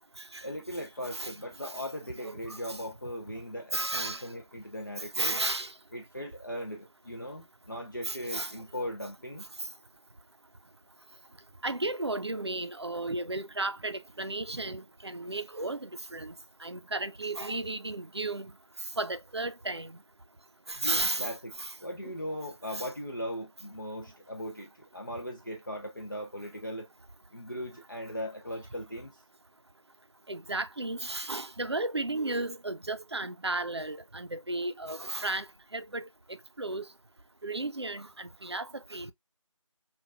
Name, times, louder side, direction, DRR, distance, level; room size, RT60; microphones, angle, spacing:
voice 1, 0.4-5.4 5.9-9.4 20.8-21.5 21.8-26.9 27.3-29.2, equal, 40° left, 0.6 m, -39 dB
voice 2, 2.2-2.8 3.7-4.3 5.2-5.7 8.0-8.5 11.6-16.3 16.6-18.5 19.0-20.0 20.7-21.3 21.6-21.7 22.0-22.1 22.7-22.9 30.3-35.5 35.7-36.1 36.6-36.9 37.4-39.1, right 2 dB, 55° right, 0.6 m, -34 dB
5.7 x 2.4 x 2.4 m
figure-of-eight pair, 175°, 17 cm